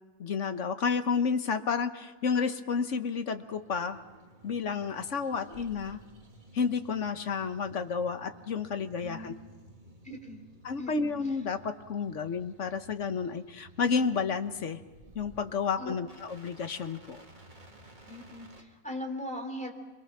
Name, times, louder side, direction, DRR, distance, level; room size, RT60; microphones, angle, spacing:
voice 1, 0.2-4.0 4.4-6.0 6.5-9.4 10.6-14.8 15.1-17.2, left 5 dB, 50° left, 8 dB, 1.2 m, -31 dB
sound 1, 3.3-18.6, right 1 dB, 25° right, 2.4 m, -54 dB
voice 2, 9.0-9.3 10.0-10.4 10.8-11.1 15.8-15.9 18.1-19.7, left 1 dB, 5° left, 2 dB, 3.2 m, -39 dB
28.0 x 22.5 x 6.1 m, 1.3 s
omnidirectional pair, 1.9 m